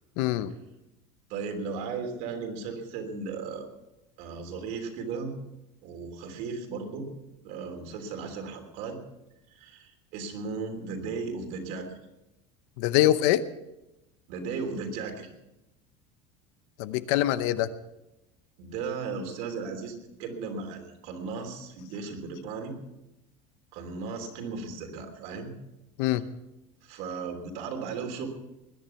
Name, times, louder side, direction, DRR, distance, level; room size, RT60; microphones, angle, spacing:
voice 1, 0.2-0.5 12.8-13.4 16.8-17.7 26.0-26.2, left 14 dB, 65° left, 14 dB, 0.8 m, -24 dB
voice 2, 1.3-3.7 4.2-5.3 5.8-7.1 7.4-9.0 9.5-12.0 14.3-15.3 18.6-22.7 23.7-25.5 26.8-28.3, right 4 dB, 55° right, 4 dB, 3.3 m, -36 dB
20.5 x 10.5 x 5.8 m, 0.94 s
cardioid pair, 175°, 16 cm